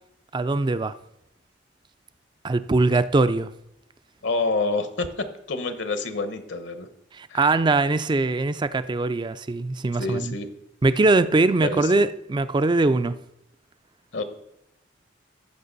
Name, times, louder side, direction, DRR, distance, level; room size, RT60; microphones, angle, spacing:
voice 1, 0.3-1.0 2.4-3.5 7.1-10.3 10.8-13.2, right 3 dB, 25° right, 0.4 m, -22 dB
voice 2, 4.2-6.9 7.3-7.4 10.0-10.5 11.6-11.9 14.1-14.2, left 3 dB, 70° left, 1.0 m, -27 dB
15.0 x 5.9 x 4.0 m
head